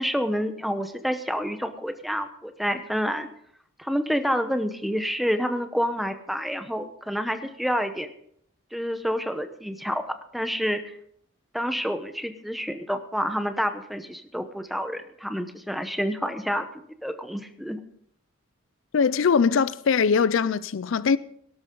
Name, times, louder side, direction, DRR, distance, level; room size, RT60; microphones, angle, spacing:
voice 1, 0.0-3.3 3.8-8.1 8.7-10.0 10.3-11.0 11.5-16.7 17.0-17.8, equal, ahead, 0.9 m, -28 dB
voice 2, 18.9-21.2, left 6 dB, 65° left, 0.4 m, -21 dB
18.0 x 12.5 x 3.8 m
head